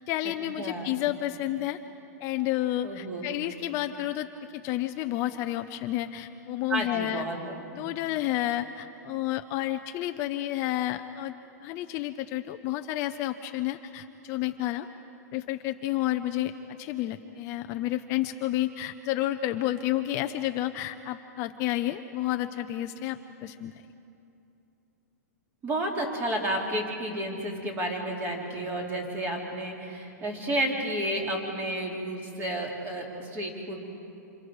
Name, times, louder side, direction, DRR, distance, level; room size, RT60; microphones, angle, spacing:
voice 1, 0.1-1.8 2.2-4.3 4.5-7.2 7.7-11.3 11.6-14.9 15.3-23.8, left 14 dB, 30° left, 8 dB, 0.6 m, -30 dB
voice 2, 0.6-0.9 2.8-3.3 6.7-7.3 7.7-7.9 25.6-33.9, right 1 dB, 20° right, 0 dB, 3.6 m, -31 dB
27.5 x 27.5 x 4.9 m, 2.8 s
hypercardioid pair, 155°, 9 cm